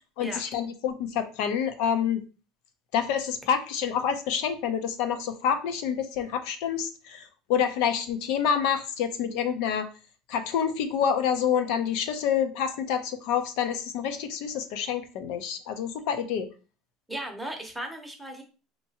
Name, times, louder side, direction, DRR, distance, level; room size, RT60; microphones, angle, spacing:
voice 1, 0.2-2.2 2.9-9.9 10.3-16.5, left 8 dB, 70° left, 8 dB, 0.6 m, -27 dB
voice 2, 17.1-18.4, right 1 dB, 5° right, 2 dB, 0.8 m, -36 dB
4.5 x 2.9 x 2.8 m, 0.34 s
cardioid pair, 155°, 0 cm